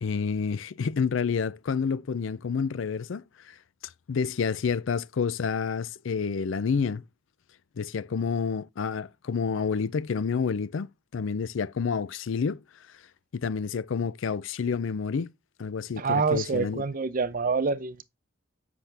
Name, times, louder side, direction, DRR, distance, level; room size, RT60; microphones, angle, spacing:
voice 1, 0.0-3.6 3.8-7.0 7.8-12.6 13.3-15.3 15.6-16.8, left 5 dB, 75° left, 0.5 m, -29 dB
voice 2, 16.0-18.0, right 4 dB, 45° right, 0.6 m, -26 dB
7.9 x 5.9 x 3.3 m
head